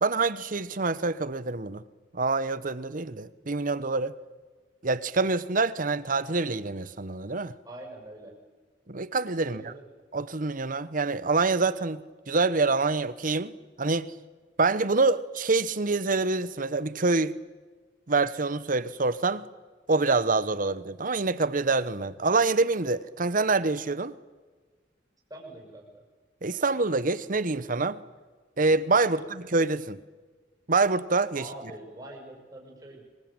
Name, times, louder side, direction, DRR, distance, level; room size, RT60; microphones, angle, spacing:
voice 1, 0.0-1.8 2.1-4.1 4.8-7.5 8.9-9.7 10.1-14.1 14.6-17.4 18.1-19.4 19.9-24.1 26.4-28.0 28.6-30.0 30.7-31.4, right 3 dB, 50° right, 1.0 m, -26 dB
voice 2, 7.6-8.3 9.3-9.8 25.3-25.9 29.1-29.3 31.3-33.0, right 1 dB, 20° right, 6.6 m, -44 dB
26.0 x 23.0 x 8.9 m
head